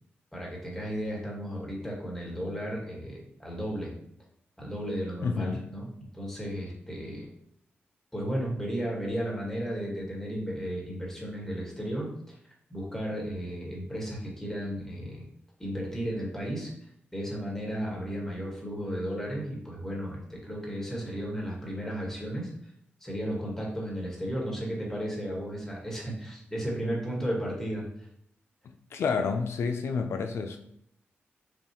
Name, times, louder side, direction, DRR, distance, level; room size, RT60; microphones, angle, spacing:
voice 1, 0.3-3.9 4.6-7.3 8.1-12.3 12.7-15.2 15.6-16.7 17.1-22.5 23.0-27.9, equal, 10° left, -3 dB, 1.5 m, -34 dB
voice 2, 5.2-5.6 28.9-30.6, left 5 dB, 85° left, 6 dB, 0.4 m, -29 dB
6.8 x 2.3 x 2.9 m, 0.72 s
wide cardioid pair, 105°, 4 cm